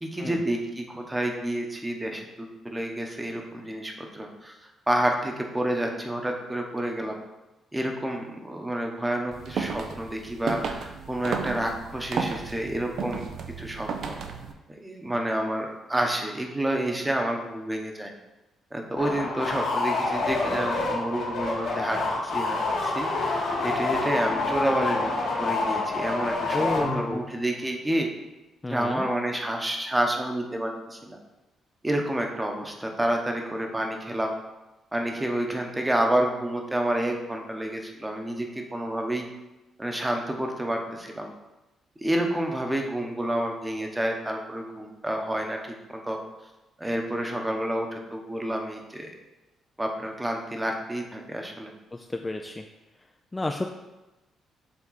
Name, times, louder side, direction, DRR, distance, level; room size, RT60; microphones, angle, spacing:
voice 1, 0.0-7.1 7.7-13.2 13.6-14.1 14.7-18.1 18.7-22.6 22.8-25.1 25.4-28.1 28.7-31.2 31.8-34.3 34.9-39.3 39.8-41.3 42.0-46.2 46.8-49.1 49.8-51.7, right 1 dB, 10° right, 2 dB, 1.0 m, -29 dB
sound 1, 9.3-14.5, right 5 dB, 65° right, 0.6 m, -33 dB
sound 2, 19.0-27.3, left 3 dB, 85° left, 2.2 m, -27 dB
voice 2, 26.5-27.2 28.6-29.1 51.9-52.6 53.3-53.6, left 2 dB, 15° left, 3 dB, 0.4 m, -31 dB
7.2 x 3.5 x 4.1 m, 1.0 s
cardioid pair, 90°, 0 cm